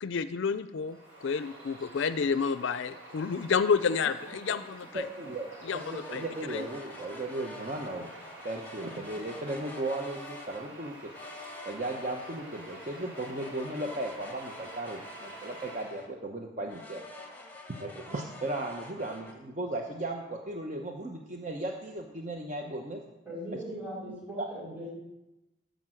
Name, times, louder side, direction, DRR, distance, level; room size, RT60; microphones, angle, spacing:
voice 1, 0.0-5.1 5.6-6.6, left 5 dB, 65° left, 13 dB, 0.4 m, -30 dB
Bird vocalization bird call bird song, 0.7-16.0, right 2 dB, 80° right, 3.3 m, -49 dB
sound 1, 3.6-4.8 5.6-10.7 11.1-16.2 16.7-19.3, left 2 dB, 10° left, 1.2 m, -47 dB
voice 2, 4.9-5.5 5.7-8.1 8.4-11.0 11.6-17.0 17.8-23.0, right 2 dB, 35° right, 2 dB, 0.8 m, -36 dB
voice 3, 23.2-24.9, equal, 10° right, -6 dB, 5.0 m, -39 dB
12.0 x 5.2 x 7.6 m, 0.96 s
head